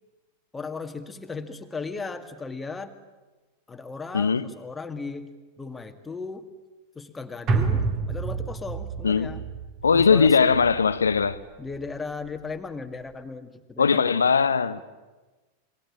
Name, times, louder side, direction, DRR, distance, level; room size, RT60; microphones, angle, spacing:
voice 1, 0.5-3.0 3.7-6.5 7.0-9.4 9.9-10.5 11.6-14.2, left 4 dB, 10° left, 1.9 m, -36 dB
voice 2, 4.1-4.5 9.0-9.4 9.8-11.4 13.8-14.8, left 5 dB, 70° left, 0.8 m, -20 dB
sound 1, 7.5-11.9 12.3-12.4, right 4 dB, 35° right, 3.4 m, -29 dB
27.5 x 23.0 x 8.7 m
figure-of-eight pair, 90°, 0 cm